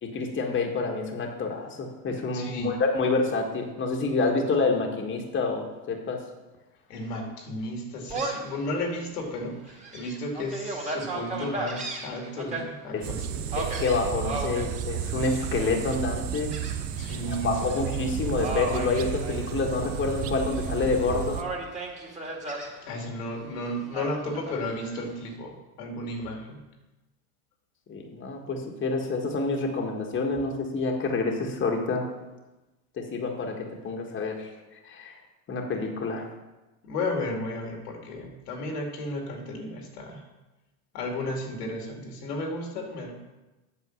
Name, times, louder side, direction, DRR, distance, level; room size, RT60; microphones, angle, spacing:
voice 1, 0.0-6.2 12.9-13.0 13.6-16.5 17.3-21.4 27.9-32.1 33.0-33.6 33.8-34.5 34.9-35.2 35.5-36.3, left 3 dB, 25° left, 1 dB, 1.6 m, -28 dB
voice 2, 2.3-2.8 6.9-13.5 17.0-17.9 22.8-26.6 36.8-40.2 40.9-43.1, left 1 dB, 85° left, 2 dB, 2.5 m, -33 dB
Gull seagull, 8.1-8.5 9.0-9.1 9.7-12.6 13.5-14.7 15.2-15.7 16.5-17.2 17.5-17.8 18.3-19.9 20.2-21.0 21.3-22.7 23.9-24.9, right 3 dB, 15° right, 2.2 m, -35 dB
sound 1, 13.0-21.4, right 9 dB, 30° right, 0.7 m, -32 dB
8.4 x 6.6 x 6.3 m, 1.1 s
supercardioid pair, 105°, 45 cm